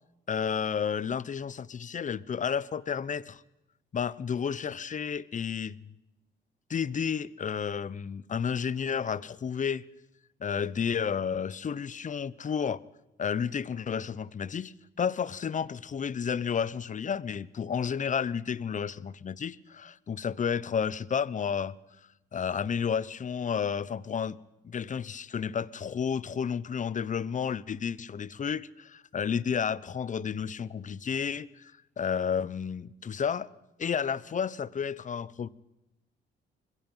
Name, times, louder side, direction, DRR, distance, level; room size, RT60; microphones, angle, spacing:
voice 1, 0.3-3.4 3.9-5.9 6.7-9.8 10.4-12.8 13.2-21.7 22.3-24.4 24.6-33.5 33.8-35.5, left 7 dB, 40° left, 0.9 m, -31 dB
26.0 x 22.0 x 5.6 m
cardioid pair, 90°, 20 cm